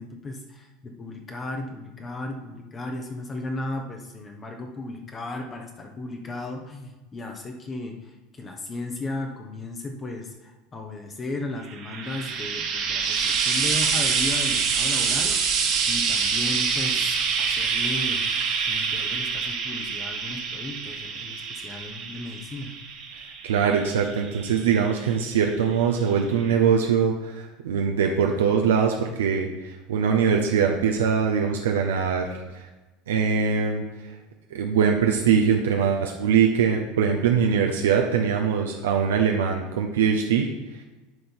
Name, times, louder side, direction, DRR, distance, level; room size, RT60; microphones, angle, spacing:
voice 1, 0.0-15.5 15.9-18.3 18.7-22.7, left 2 dB, 25° left, 3 dB, 0.9 m, -35 dB
Frying (food), 11.7-25.1 26.1-26.2, right 6 dB, 50° right, 1.3 m, -26 dB
voice 2, 23.4-32.6 33.1-33.8 34.5-40.5, right 6 dB, 70° right, 2 dB, 0.6 m, -22 dB
10.5 x 3.9 x 4.4 m, 1.1 s
figure-of-eight pair, 75°, 0 cm